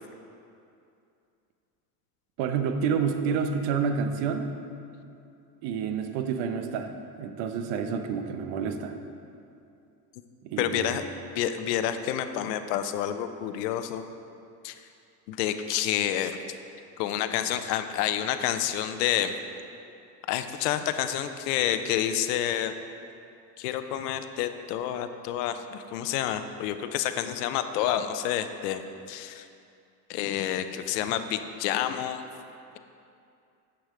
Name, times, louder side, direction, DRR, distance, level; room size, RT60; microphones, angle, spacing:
voice 1, 2.4-4.5 5.6-9.0 10.4-11.0, right 6 dB, 60° right, 7 dB, 0.9 m, -29 dB
voice 2, 10.6-11.0 11.4-14.0 14.6-14.7 15.3-16.4 17.0-19.3 20.3-22.7 23.6-28.8 29.1-29.5 30.1-32.2, left 11 dB, 75° left, 9 dB, 0.7 m, -29 dB
8.3 x 6.2 x 5.0 m, 2.6 s
hypercardioid pair, 85°, 49 cm